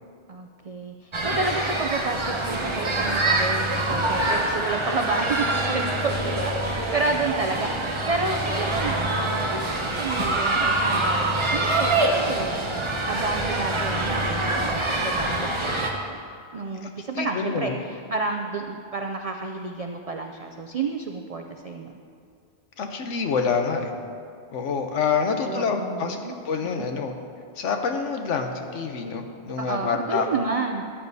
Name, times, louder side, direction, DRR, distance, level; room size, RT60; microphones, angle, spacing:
voice 1, 0.3-12.6 13.0-16.3 16.5-21.9 25.4-26.3 26.6-26.9 29.6-30.8, right 3 dB, 65° right, 4 dB, 0.3 m, -30 dB
sound 1, 1.1-15.9, right 2 dB, 30° right, 0.8 m, -25 dB
voice 2, 17.1-17.8 22.8-23.9 24.5-26.2 26.4-27.1 27.6-30.3, left 5 dB, 80° left, 5 dB, 1.2 m, -26 dB
14.0 x 9.8 x 2.7 m, 2.3 s
omnidirectional pair, 1.2 m